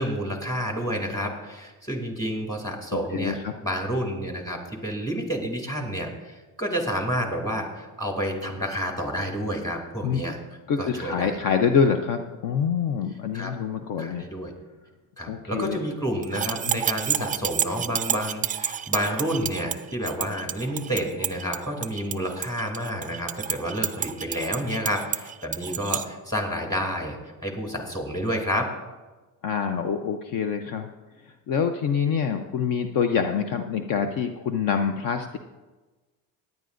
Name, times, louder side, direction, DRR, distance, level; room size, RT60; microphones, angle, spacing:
voice 1, 0.0-10.4 10.8-11.4 13.3-13.5 14.0-14.5 15.2-27.2 27.4-28.7, equal, 10° left, 1 dB, 2.7 m, -29 dB
voice 2, 2.9-3.5 10.0-10.2 10.7-14.3 15.3-15.8 16.6-16.8 29.4-30.9 31.2-35.4, left 6 dB, 50° left, 7 dB, 0.7 m, -26 dB
sound 1, 16.2-26.0, right 9 dB, 20° right, 0.3 m, -30 dB
17.0 x 10.5 x 2.6 m, 1.2 s
cardioid pair, 115°, 42 cm